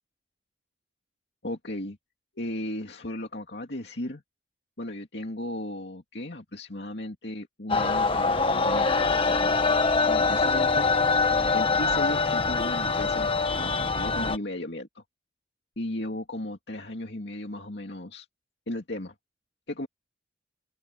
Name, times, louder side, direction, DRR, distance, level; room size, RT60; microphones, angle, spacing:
voice 1, 1.4-2.0 2.4-4.2 4.8-9.5 10.1-10.9 11.5-15.0 15.8-18.3 18.7-19.1 19.7-19.9, left 1 dB, 65° left, 2.6 m, -35 dB
sound 1, 7.7-14.4, left 4 dB, 30° left, 1.5 m, -24 dB
open air
head